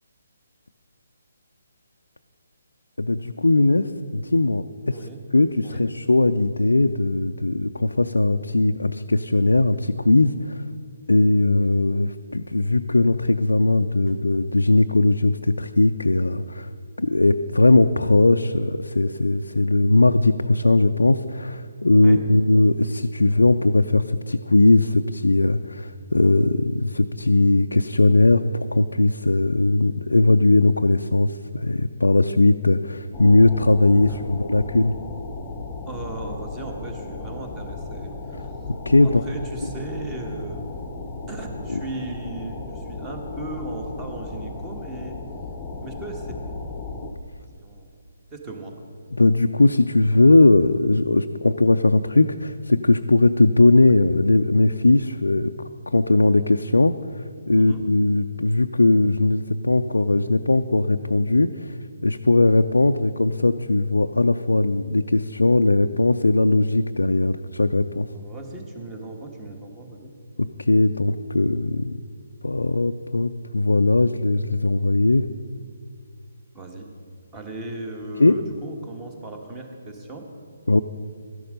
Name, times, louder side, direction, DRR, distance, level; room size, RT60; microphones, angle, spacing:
voice 1, 3.0-5.0 5.3-10.6 11.1-16.7 17.0-35.0 38.7-39.2 41.7-41.8 49.2-55.5 55.9-68.1 70.4-71.9 72.4-75.3 78.2-78.4 80.7-80.8, left 2 dB, 75° left, 6 dB, 0.4 m, -19 dB
voice 2, 4.9-5.2 5.6-5.8 22.0-22.2 34.1-34.2 35.8-38.7 39.0-40.6 41.3-45.2 45.8-46.3 47.4-47.9 48.3-48.8 57.5-57.8 68.1-70.1 76.5-76.9 77.3-80.3, right 2 dB, 15° right, 3 dB, 1.5 m, -36 dB
sound 1, 33.1-47.1, left 3 dB, 10° left, 0.9 m, -36 dB
13.0 x 11.0 x 5.2 m, 2.3 s
figure-of-eight pair, 140°, 0 cm